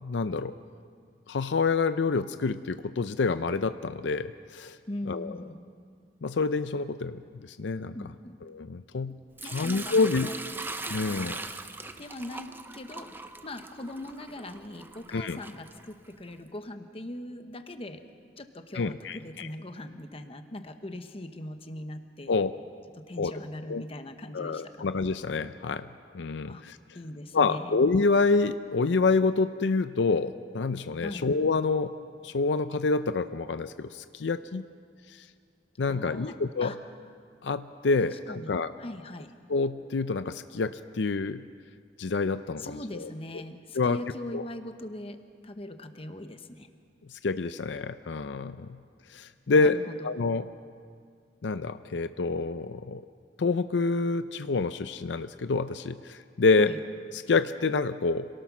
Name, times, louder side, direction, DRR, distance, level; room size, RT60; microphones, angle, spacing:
voice 1, 0.0-0.5 1.3-4.8 5.1-5.3 6.2-8.0 8.5-9.2 9.5-10.3 10.9-11.4 15.1-15.4 18.7-19.5 22.3-22.5 23.2-23.3 23.7-23.8 24.3-25.9 26.1-26.8 27.3-31.9 32.2-34.6 35.1-35.2 35.8-36.7 37.4-38.7 39.5-41.4 42.0-43.1 43.7-44.0 44.3-44.4 47.1-48.8 49.1-49.8 50.0-50.5 51.4-53.0 53.4-56.7 57.3-58.3, left 4 dB, 80° left, 11 dB, 0.5 m, -27 dB
voice 2, 4.9-5.6 7.9-8.4 9.4-11.4 11.9-18.0 18.4-22.4 23.0-24.9 26.5-26.6 26.9-27.7 31.0-31.3 35.9-36.4 36.6-36.8 38.1-38.5 38.8-39.3 42.6-46.7 49.5-50.1 56.6-56.8, left 1 dB, 30° left, 8 dB, 1.1 m, -41 dB
Sink (filling or washing) / Liquid, 9.4-16.3, right 3 dB, 10° right, 0.6 m, -40 dB
26.5 x 18.5 x 6.1 m, 2.1 s
head